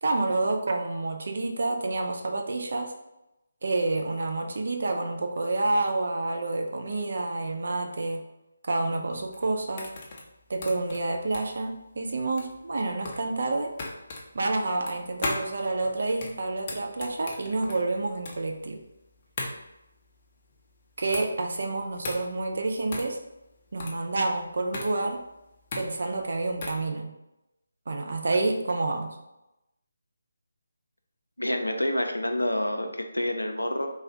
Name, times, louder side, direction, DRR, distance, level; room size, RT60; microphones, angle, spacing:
voice 1, 0.0-2.9 3.6-8.2 8.7-9.9 10.5-13.7 14.3-18.8 21.0-23.2 23.7-25.2 25.7-27.1 27.9-29.2, right 2 dB, 55° right, 3 dB, 0.4 m, -28 dB
sound 1, 9.1-26.9, left 2 dB, 30° left, 0.5 m, -38 dB
voice 2, 31.4-33.9, left 1 dB, 85° left, 5 dB, 0.4 m, -28 dB
3.2 x 2.3 x 2.8 m, 0.93 s
figure-of-eight pair, 150°, 0 cm